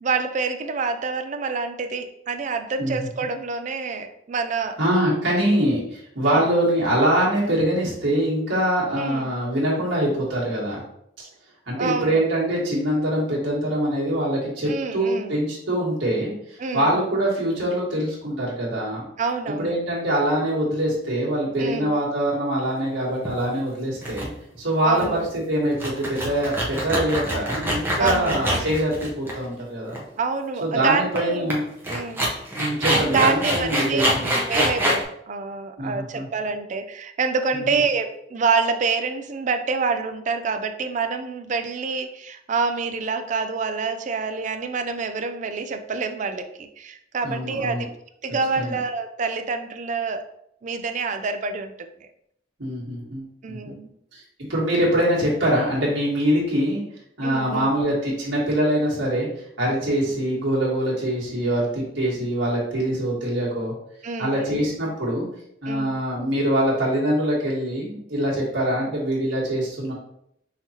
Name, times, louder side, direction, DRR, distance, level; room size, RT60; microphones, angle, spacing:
voice 1, 0.0-4.8 5.4-5.6 6.2-6.4 8.9-9.3 11.8-12.2 14.7-15.3 16.6-17.0 19.2-19.8 21.6-21.9 24.8-25.2 28.0-28.5 30.2-31.6 31.9-32.3 33.1-34.1 34.5-47.9 48.2-50.2 50.6-51.7 52.0-52.1 53.4-53.9 57.2-57.7 64.0-64.5 65.7-65.9 68.7-68.8, right 4 dB, 40° right, 7 dB, 0.4 m, -27 dB
voice 2, 4.8-10.8 11.2-11.3 11.7-19.0 19.6-24.3 24.6-30.0 30.6-31.6 32.6-34.4 35.8-36.3 37.5-37.8 47.2-47.8 48.6-48.8 52.6-53.7 54.1-54.2 54.5-56.8 57.2-59.3 59.6-63.7 64.2-65.3 65.6-69.9, right 1 dB, 80° right, -5 dB, 1.7 m, -24 dB
sound 1, 23.2-23.5 24.0-24.3 24.5-24.6 24.9-25.2 25.7-29.6 29.9-30.0 31.1-31.2 31.5-31.6 31.8-35.0, equal, 10° right, 0.8 m, -25 dB
5.6 x 3.0 x 2.9 m, 0.75 s
head